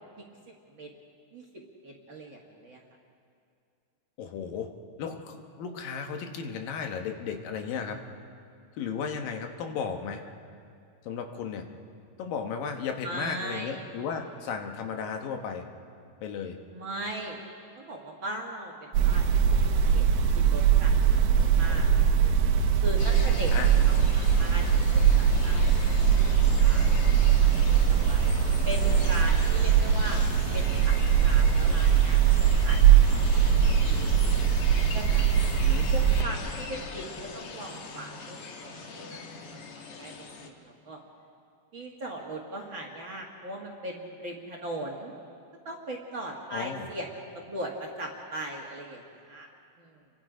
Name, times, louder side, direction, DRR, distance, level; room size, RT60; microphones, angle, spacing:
voice 1, 1.8-2.8 13.0-13.8 16.7-17.4 17.8-20.1 20.3-21.2 21.5-22.3 22.8-26.3 26.6-27.5 27.8-28.2 28.7-30.3 30.5-32.3 32.6-32.8 33.1-34.4 34.9-35.5 35.9-39.6 40.0-40.1 40.4-41.0 41.7-45.1 45.7-47.1 47.3-49.5 49.8-50.0, right 1 dB, 40° right, -1 dB, 2.0 m, -39 dB
voice 2, 4.2-4.7 5.0-8.0 8.8-10.2 11.0-11.7 12.2-15.6 16.2-16.6 21.4-21.8 23.5-23.7 35.6-35.9 46.5-46.9, left 6 dB, 75° left, 4 dB, 2.9 m, -35 dB
sound 1, 18.9-36.2, right 8 dB, 75° right, 2.7 m, -21 dB
sound 2, 23.0-40.5, left 4 dB, 50° left, 2.0 m, -40 dB
29.5 x 23.5 x 5.1 m, 2.5 s
omnidirectional pair, 4.2 m